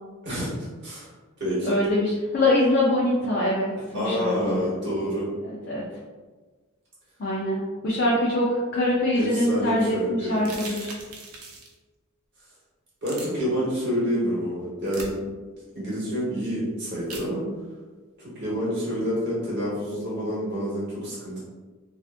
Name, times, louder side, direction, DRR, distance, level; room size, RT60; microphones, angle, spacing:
voice 1, 1.6-4.7 5.7-5.8 7.2-10.9, left 1 dB, 45° left, -5 dB, 0.4 m, -24 dB
voice 2, 3.9-5.3 9.1-10.5 13.0-15.2 15.7-17.5 18.2-21.4, equal, 50° right, -7 dB, 1.0 m, -28 dB
sound 1, 10.4-11.7 13.0-13.2 14.9-15.1 17.1-17.3, right 3 dB, 80° right, 0.5 m, -39 dB
2.6 x 2.4 x 2.4 m, 1.3 s
head